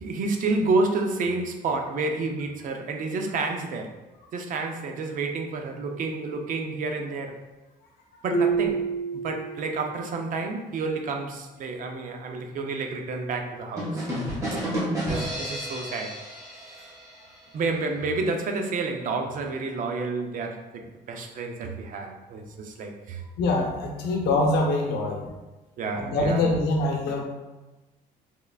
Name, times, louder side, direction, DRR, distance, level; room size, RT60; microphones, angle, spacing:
voice 1, 0.0-3.9 4.3-7.3 8.2-8.8 9.2-14.1 14.5-14.6 15.1-16.2 16.7-16.9 17.5-23.2 25.8-26.5, right 3 dB, 50° right, 4 dB, 0.5 m, -29 dB
Marimba xylophone, 8.3-10.0, right 5 dB, 55° left, 0.4 m, -27 dB
sound 1, 13.8-17.5, equal, 20° right, 1.4 m, -31 dB
voice 2, 23.4-25.2 25.9-27.2, left 2 dB, 80° left, 1 dB, 0.7 m, -24 dB
3.6 x 3.2 x 2.3 m, 1.1 s
cardioid pair, 110°, 17 cm